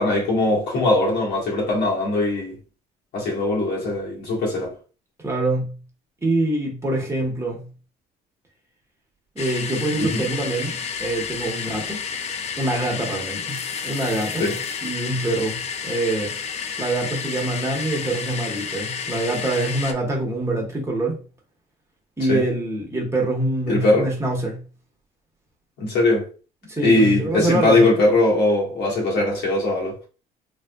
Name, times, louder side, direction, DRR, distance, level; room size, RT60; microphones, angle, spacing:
voice 1, 0.0-2.5 3.1-4.7 10.0-10.2 14.4-14.6 22.3-22.4 23.7-24.1 25.8-26.2 26.8-30.0, left 2 dB, 75° left, 1.5 m, -20 dB
voice 2, 5.2-5.7 6.2-7.7 9.3-12.0 12.6-13.6 13.8-14.4 14.8-15.6 15.8-16.3 16.8-21.2 22.2-24.6 26.6-27.9, right 2 dB, 15° right, 1.0 m, -25 dB
sound 1, 9.4-19.9, left 6 dB, 40° left, 0.4 m, -31 dB
3.4 x 2.4 x 2.3 m
cardioid pair, 110°, 17 cm